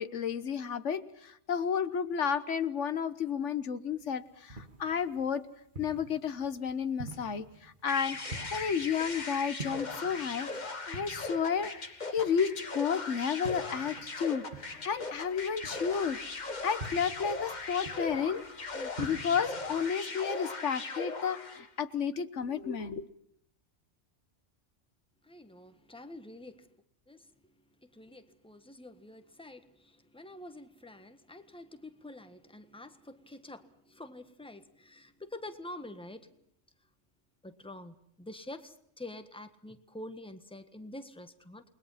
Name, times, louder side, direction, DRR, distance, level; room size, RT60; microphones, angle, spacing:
voice 1, 0.0-5.4 5.8-8.2 8.5-18.4 18.7-23.1, left 7 dB, 80° left, 12 dB, 1.5 m, -32 dB
sound 1, 4.0-19.9, right 3 dB, 40° right, 2.1 m, -48 dB
sound 2, 7.9-21.7, left 3 dB, 40° left, 1.6 m, -39 dB
voice 2, 25.2-26.7 27.1-27.3 27.8-36.3 37.4-41.6, left 1 dB, 5° left, 9 dB, 1.5 m, -47 dB
29.5 x 21.0 x 5.7 m, 0.70 s
omnidirectional pair, 1.2 m